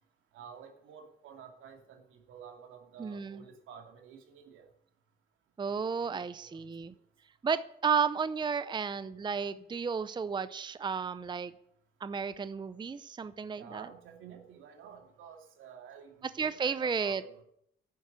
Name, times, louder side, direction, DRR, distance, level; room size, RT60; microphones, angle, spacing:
voice 1, 0.3-4.7 5.6-6.7 13.6-17.4, right 7 dB, 85° right, 4 dB, 2.8 m, -51 dB
voice 2, 3.0-3.4 5.6-6.9 7.4-11.5 12.0-13.9 16.4-17.2, right 6 dB, 20° right, 14 dB, 0.6 m, -33 dB
11.0 x 9.3 x 8.1 m, 0.72 s
cardioid pair, 90°, 20 cm